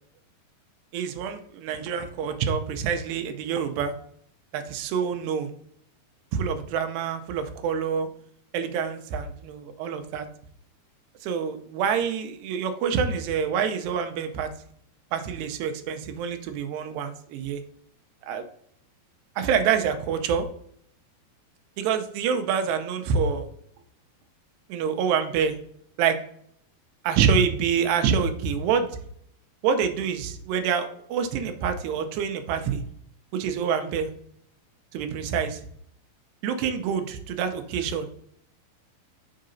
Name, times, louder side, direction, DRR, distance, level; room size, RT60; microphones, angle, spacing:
voice 1, 0.9-3.9 4.5-5.5 6.3-8.1 8.5-10.3 11.2-14.5 15.1-17.6 18.2-18.4 19.4-20.5 21.8-23.5 24.7-25.5 26.0-26.2 27.0-28.9 29.6-32.8 33.3-34.1 34.9-35.6 36.4-38.1, right 7 dB, 90° right, 7 dB, 2.8 m, -26 dB
6.5 x 3.9 x 5.1 m, 0.64 s
omnidirectional pair, 4.8 m